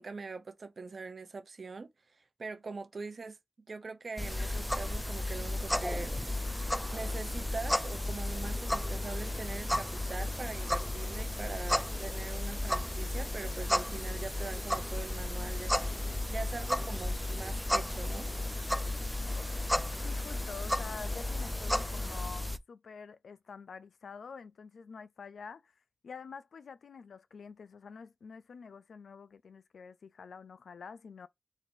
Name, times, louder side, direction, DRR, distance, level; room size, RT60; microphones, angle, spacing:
voice 1, 0.0-1.9 2.4-3.4 3.7-6.1 6.9-18.3, right 4 dB, 45° right, 0.7 m, -42 dB
sound 1, 4.2-22.6, left 1 dB, ahead, 0.3 m, -33 dB
sound 2, 4.3-22.3, left 3 dB, 40° left, 0.8 m, -50 dB
voice 2, 20.0-31.3, left 5 dB, 85° left, 0.3 m, -47 dB
4.1 x 2.6 x 4.3 m
wide cardioid pair, 150°, 0 cm